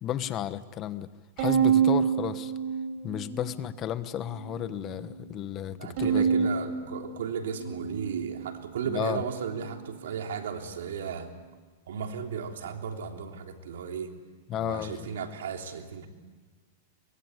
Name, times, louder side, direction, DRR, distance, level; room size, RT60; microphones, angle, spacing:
voice 1, 0.0-1.1 1.4-2.5 3.0-6.5 8.9-9.2 14.5-15.1, left 11 dB, 30° left, 13 dB, 1.2 m, -33 dB
Bowed string instrument, 1.4-3.8 4.2-5.0 6.0-8.5, right 7 dB, 50° right, 7.1 m, -28 dB
voice 2, 5.8-11.3 11.9-14.1 14.5-16.1, right 6 dB, 85° right, 3 dB, 3.4 m, -35 dB
23.5 x 22.5 x 9.8 m, 1.3 s
supercardioid pair, 140°, 0 cm